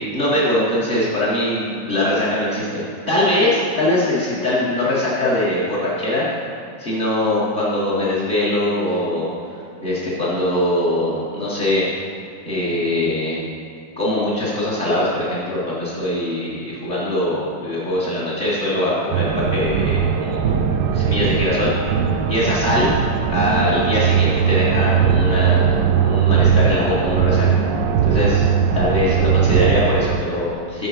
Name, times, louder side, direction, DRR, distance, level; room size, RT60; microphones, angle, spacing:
voice 1, 0.1-6.3 6.8-9.3 9.8-11.8 12.4-13.4 14.0-20.6 20.9-21.9 22.3-22.9 23.3-27.6 28.0-28.5 28.7-30.9, left 1 dB, 30° left, -10 dB, 1.5 m, -22 dB
sound 1, 19.1-30.2, right 7 dB, 75° right, 1.1 m, -19 dB
7.9 x 5.9 x 5.7 m, 2.6 s
omnidirectional pair, 2.1 m